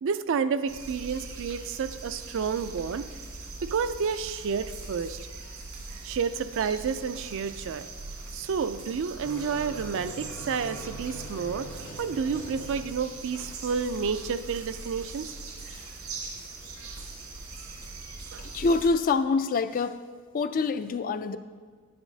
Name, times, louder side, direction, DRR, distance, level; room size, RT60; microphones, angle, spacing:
voice 1, 0.0-3.1 3.6-5.2 6.0-7.9 8.3-11.7 12.0-15.4 18.3-18.4, right 6 dB, 60° right, 11 dB, 0.4 m, -30 dB
sound 1, 0.7-18.9, right 3 dB, 90° right, 1.9 m, -41 dB
sound 2, 9.2-16.8 18.2-18.5, right 1 dB, 65° left, 2.2 m, -46 dB
voice 2, 18.5-20.0 20.3-21.4, left 4 dB, 40° left, 11 dB, 0.4 m, -25 dB
10.5 x 10.0 x 2.7 m, 1.5 s
head